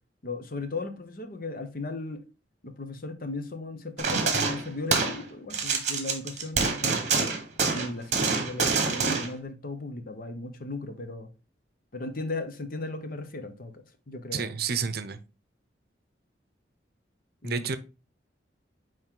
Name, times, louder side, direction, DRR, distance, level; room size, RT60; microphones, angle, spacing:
voice 1, 0.2-2.2 2.6-7.1 7.6-11.3 11.9-13.7 14.1-14.5 17.4-17.6, left 2 dB, 55° left, 0.9 m, -36 dB
sound 1, 4.0-5.2 5.5-9.3, right 4 dB, 40° right, 1.3 m, -26 dB
voice 2, 14.3-15.2 17.4-17.8, right 6 dB, 60° right, 0.6 m, -30 dB
9.0 x 3.2 x 3.7 m
head